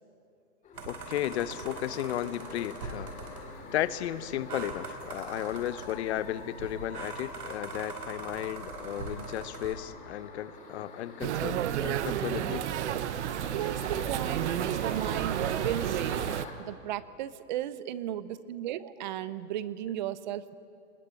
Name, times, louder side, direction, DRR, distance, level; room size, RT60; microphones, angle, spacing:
sound 1, 0.6-16.5, left 4 dB, 15° left, 2.8 m, -47 dB
sound 2, 0.7-9.7, right 3 dB, 80° right, 4.5 m, -42 dB
voice 1, 0.9-3.1 3.7-12.7, left 12 dB, 45° left, 14 dB, 1.0 m, -34 dB
sound 3, 11.2-16.5, right 10 dB, 50° right, 1.1 m, -31 dB
voice 2, 13.5-16.2 16.6-20.5, right 12 dB, 30° right, 16 dB, 0.7 m, -35 dB
25.0 x 20.5 x 8.5 m, 2.4 s
hypercardioid pair, 150°, 46 cm